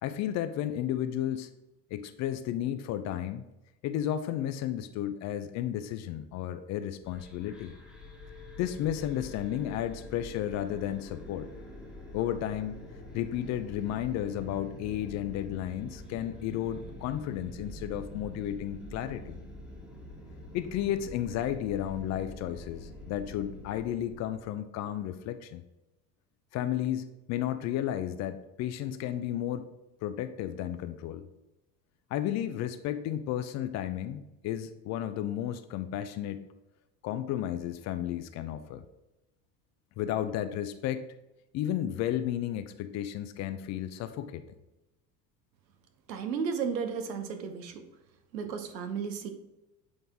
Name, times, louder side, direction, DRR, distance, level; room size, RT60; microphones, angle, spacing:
voice 1, 0.0-1.5 1.9-3.4 3.8-7.7 8.6-11.5 12.1-12.8 13.1-19.4 20.5-25.6 26.5-29.7 30.0-31.2 32.1-36.4 37.0-38.8 40.0-41.1 41.5-44.4, left 11 dB, 35° left, 11 dB, 0.4 m, -33 dB
sound 1, 7.0-24.5, left 2 dB, ahead, 1.3 m, -46 dB
voice 2, 46.1-47.8 48.3-49.3, right 6 dB, 80° right, 7 dB, 0.9 m, -33 dB
7.8 x 3.9 x 3.5 m, 0.98 s
hypercardioid pair, 75°, 50 cm